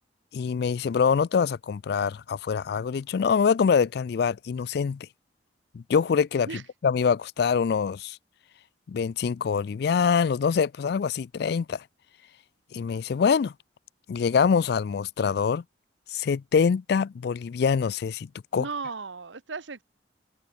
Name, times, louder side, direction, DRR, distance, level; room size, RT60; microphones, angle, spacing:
voice 1, 0.3-5.1 5.7-6.5 6.8-8.2 8.9-11.8 12.7-13.5 14.1-15.6 16.1-18.3 18.5-18.7, left 6 dB, 60° left, 0.3 m, -24 dB
voice 2, 18.5-19.8, right 4 dB, 80° right, 1.1 m, -35 dB
open air
head